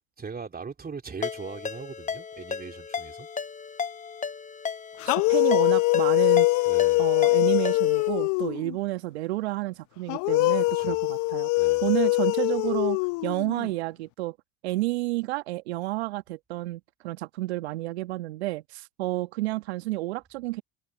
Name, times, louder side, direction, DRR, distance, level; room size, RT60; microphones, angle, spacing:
voice 1, 0.2-3.3 6.7-7.1 10.7-11.0 11.6-11.9, right 5 dB, 30° right, 3.3 m, -40 dB
Ringtone, 1.2-8.1, left 6 dB, 25° left, 1.0 m, -35 dB
sound 1, 5.0-8.8 10.1-13.7, left 23 dB, 65° left, 0.8 m, -23 dB
voice 2, 5.0-6.5 7.0-11.5 11.8-14.4 14.6-20.6, right 18 dB, 80° right, 1.7 m, -30 dB
hypercardioid pair, 60°, 32 cm